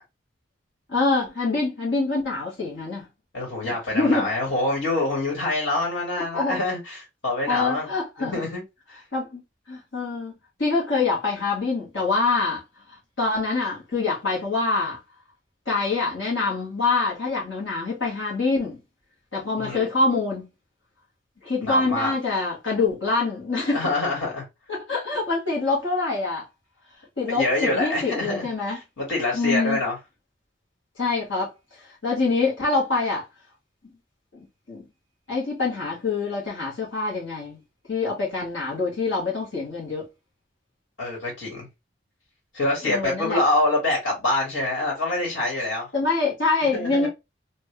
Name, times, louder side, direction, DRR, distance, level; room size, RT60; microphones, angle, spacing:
voice 1, 0.9-3.1 3.6-4.3 6.3-6.6 7.5-8.4 9.1-9.4 9.7-10.3 10.6-12.6 13.2-15.0 15.7-18.8 19.3-20.5 21.4-23.8 24.7-26.5 27.2-28.8 29.3-29.8 31.0-31.5 32.0-33.2 34.3-34.9 35.3-37.6 37.9-40.1 42.8-43.4 45.9-47.1, left 3 dB, 70° left, 1.4 m, -25 dB
voice 2, 3.3-7.9 8.2-8.6 8.9-9.0 19.6-19.9 21.6-22.1 23.6-24.4 27.3-30.0 41.0-41.7 42.5-45.9 46.7-47.1, left 2 dB, 90° left, 1.7 m, -26 dB
3.1 x 2.5 x 3.1 m
head